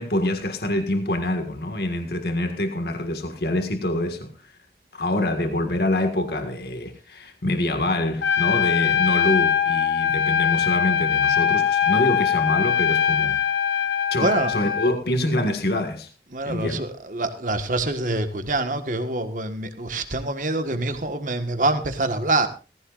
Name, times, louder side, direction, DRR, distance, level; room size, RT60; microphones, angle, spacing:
voice 1, 0.0-4.3 4.9-13.4 14.1-16.1 16.4-16.8, left 1 dB, 65° left, 1.9 m, -25 dB
Trumpet, 8.2-14.9, left 9 dB, 85° left, 1.1 m, -22 dB
voice 2, 14.2-14.5 16.3-22.5, right 2 dB, 45° right, 1.5 m, -25 dB
18.0 x 15.5 x 2.5 m
head